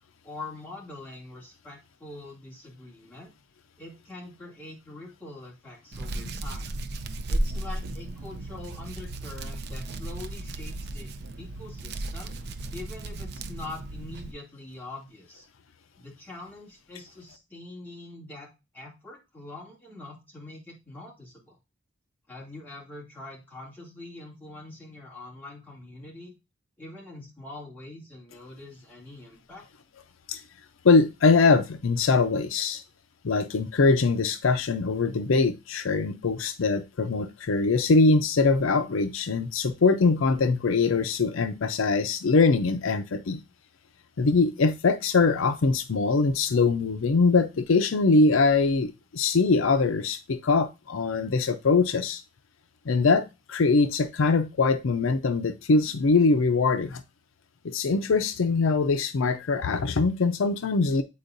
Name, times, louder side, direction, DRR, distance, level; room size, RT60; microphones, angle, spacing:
voice 1, 0.2-3.3 3.8-6.8 7.3-11.1 11.4-12.3 12.7-15.5 16.0-18.5 18.7-21.6 22.3-26.3 26.8-29.6, left 2 dB, 10° left, 2.4 m, -44 dB
Hands, 5.9-14.3, right 1 dB, 50° right, 0.5 m, -34 dB
voice 2, 30.8-32.8 33.2-43.4 44.2-52.2 52.9-57.0 57.6-61.0, left 4 dB, 75° left, 0.5 m, -22 dB
8.5 x 4.4 x 2.5 m
head